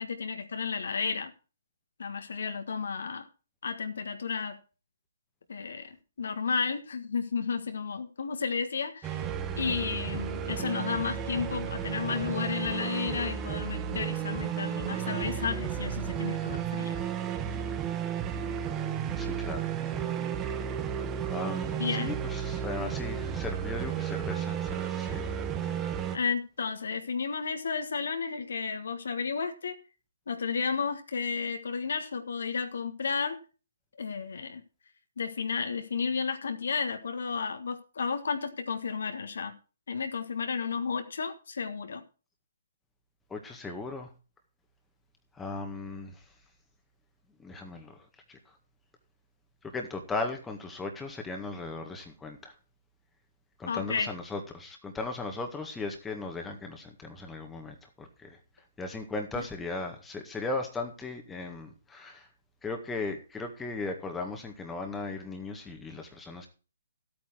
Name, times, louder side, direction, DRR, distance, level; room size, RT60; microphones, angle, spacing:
voice 1, 0.0-1.3 2.0-3.3 3.6-4.6 5.5-9.2 9.6-17.0 21.7-22.1 26.1-29.8 30.3-33.4 34.0-34.6 35.2-39.5 39.9-42.0 53.7-54.1 59.3-59.4, left 5 dB, 60° left, 7 dB, 1.6 m, -32 dB
sound 1, 9.0-26.2, right 8 dB, 20° right, 1.0 m, -33 dB
voice 2, 19.1-19.7 21.3-25.3 25.6-25.9 43.3-44.1 45.4-46.1 47.4-48.0 48.3-48.4 49.6-52.5 53.6-58.4 58.8-62.3 62.6-66.5, left 3 dB, 10° left, 3 dB, 1.8 m, -37 dB
14.0 x 8.8 x 4.6 m, 0.35 s
figure-of-eight pair, 130°, 0 cm